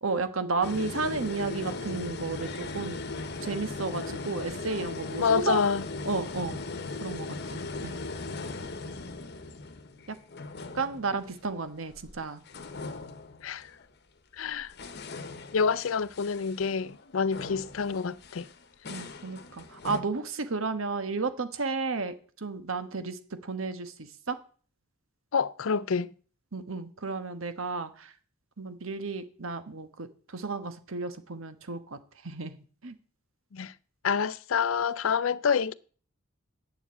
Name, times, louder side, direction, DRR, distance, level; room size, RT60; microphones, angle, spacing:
voice 1, 0.0-2.9 3.4-5.6 6.0-6.6 7.0-7.9 10.1-10.2 10.7-12.4 18.9-24.4 26.5-28.1 28.6-32.6 32.8-32.9, right 4 dB, 80° right, 1.3 m, -33 dB
sound 1, 0.6-12.2 12.5-13.8 14.4-20.0, left 3 dB, 55° left, 1.0 m, -39 dB
voice 2, 5.2-5.8 13.4-13.7 14.4-14.7 15.5-18.5 25.3-26.1 33.5-33.7 34.0-35.7, left 6 dB, 75° left, 0.5 m, -27 dB
8.3 x 7.2 x 8.3 m
head